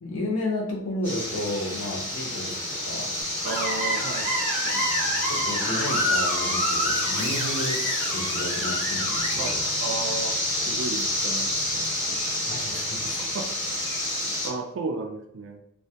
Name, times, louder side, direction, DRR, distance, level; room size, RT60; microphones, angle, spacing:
voice 1, 0.0-3.1 4.2-4.3 5.3-9.6 12.5-13.1, left 1 dB, 70° left, -1 dB, 0.6 m, -32 dB
sound 1, 1.0-14.5, left 1 dB, 10° left, 0.7 m, -28 dB
Screech, 3.4-9.5, equal, 85° left, 1.0 m, -29 dB
voice 2, 3.4-4.8 9.4-10.3 10.7-11.9 13.0-13.5 14.4-15.6, right 3 dB, 60° right, 5 dB, 0.3 m, -34 dB
2.1 x 2.1 x 2.7 m, 0.75 s
head